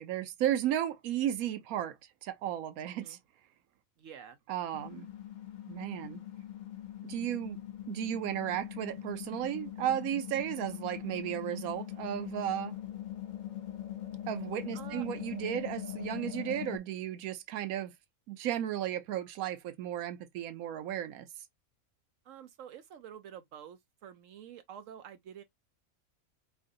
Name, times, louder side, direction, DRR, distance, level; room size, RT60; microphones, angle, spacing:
voice 1, 0.0-2.0 2.2-3.2 4.5-5.1 5.7-6.2 7.0-7.6 7.9-12.8 14.3-17.9 18.3-21.3, right 11 dB, 90° right, 1.1 m, -34 dB
voice 2, 2.9-3.2 4.0-4.4 14.7-15.1 22.2-25.4, right 9 dB, 70° right, 0.9 m, -48 dB
sound 1, 4.7-16.8, left 11 dB, 50° left, 0.6 m, -42 dB
3.8 x 3.1 x 2.5 m
omnidirectional pair, 1.5 m